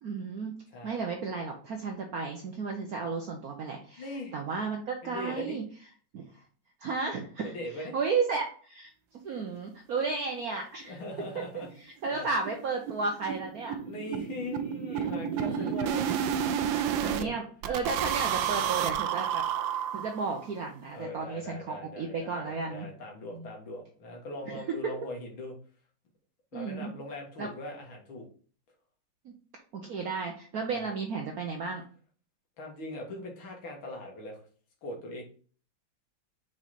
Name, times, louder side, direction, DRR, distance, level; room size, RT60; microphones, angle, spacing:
voice 1, 0.0-0.6 0.8-5.6 6.1-6.4 6.8-8.9 9.2-11.0 11.3-11.4 12.0-13.8 14.7-15.7 17.0-19.4 19.7-22.9 23.3-23.5 24.5-24.9 26.5-26.9 27.4-27.5 29.2-29.3 29.7-31.8, right 4 dB, 60° right, 2 dB, 1.1 m, -33 dB
voice 2, 4.0-4.4 5.0-5.6 7.4-8.0 10.8-11.7 12.1-12.3 13.8-17.3 20.9-25.6 26.5-28.3 30.7-30.9 32.6-34.4 34.8-35.2, left 1 dB, 80° left, 1 dB, 2.4 m, -41 dB
sound 1, 10.4-10.5 10.8-10.9 11.2-11.3 11.6-11.8 12.0-17.2 17.6-20.4, right 9 dB, 75° right, 1.3 m, -31 dB
5.0 x 4.7 x 4.2 m, 0.43 s
omnidirectional pair, 2.2 m